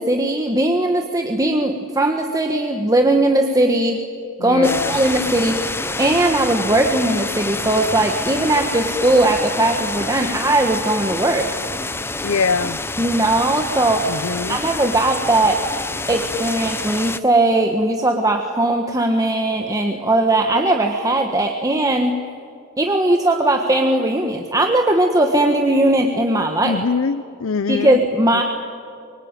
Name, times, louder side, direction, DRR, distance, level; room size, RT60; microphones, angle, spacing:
voice 1, 0.0-4.0 4.4-11.5 13.0-14.2 14.5-15.6 16.1-22.2 22.8-26.8 27.7-28.4, right 1 dB, 15° right, 3 dB, 1.4 m, -19 dB
voice 2, 4.4-5.0 12.2-12.8 14.1-14.6 26.6-28.0, left 5 dB, 70° left, 14 dB, 0.6 m, -23 dB
sound 1, 4.6-17.2, left 2 dB, 10° left, 0.7 m, -27 dB
24.5 x 24.0 x 9.1 m, 2.5 s
head